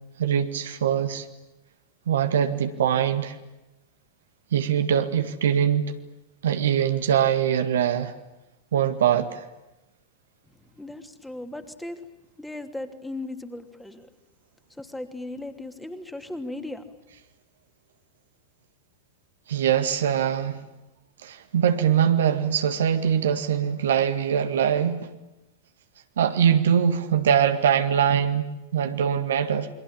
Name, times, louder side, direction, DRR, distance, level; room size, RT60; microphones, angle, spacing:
voice 1, 0.2-1.3 2.1-3.4 4.5-5.9 6.4-8.1 8.7-9.4 19.5-20.6 21.2-25.1 26.2-29.7, right 8 dB, 60° right, 1.9 m, -22 dB
voice 2, 10.8-12.0 12.4-14.1 14.8-16.8, left 2 dB, 5° left, 2.9 m, -37 dB
28.5 x 23.5 x 8.9 m
figure-of-eight pair, 90°, 0 cm